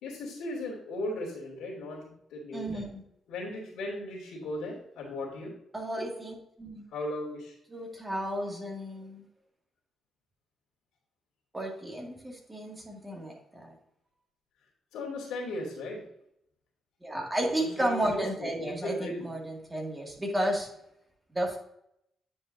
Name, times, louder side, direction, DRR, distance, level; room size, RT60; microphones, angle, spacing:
voice 1, 0.0-2.9 3.3-5.5 6.0-6.1 6.9-7.5 14.9-16.0 17.8-19.3, left 1 dB, 90° left, -3 dB, 2.8 m, -37 dB
voice 2, 2.5-3.0 5.7-6.8 7.7-9.3 11.5-13.8 17.0-20.7 21.3-21.6, right 1 dB, 15° right, 0 dB, 2.2 m, -33 dB
9.6 x 5.4 x 2.7 m, 0.76 s
cardioid pair, 80°, 0 cm